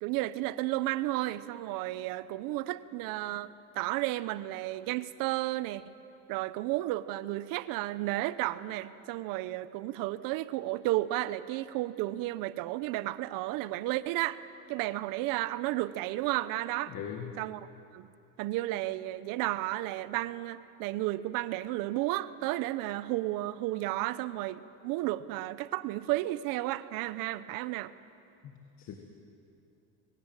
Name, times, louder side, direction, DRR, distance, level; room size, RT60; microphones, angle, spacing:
voice 1, 0.0-5.9 6.3-14.4 14.7-16.9 17.4-17.7 17.9-18.1 18.4-27.9, right 17 dB, 70° right, 15 dB, 0.8 m, -33 dB
voice 2, 16.9-17.3 28.4-28.9, left 8 dB, 50° left, 3 dB, 1.9 m, -41 dB
21.5 x 17.5 x 9.0 m, 2.7 s
cardioid pair, 120°, 35 cm